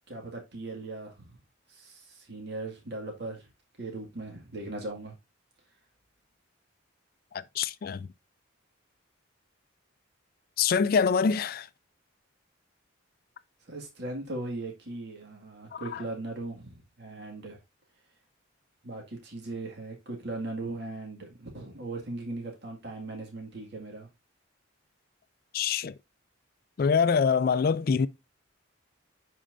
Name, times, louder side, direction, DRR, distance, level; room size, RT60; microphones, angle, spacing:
voice 1, 0.1-1.3 1.7-3.5 3.8-5.1 13.7-17.6 18.8-24.1, right 2 dB, 55° right, 1.9 m, -38 dB
voice 2, 7.3-8.1 10.6-11.7 15.7-16.0 25.5-26.0 26.8-28.1, left 6 dB, 45° left, 0.3 m, -25 dB
10.0 x 4.4 x 2.5 m
head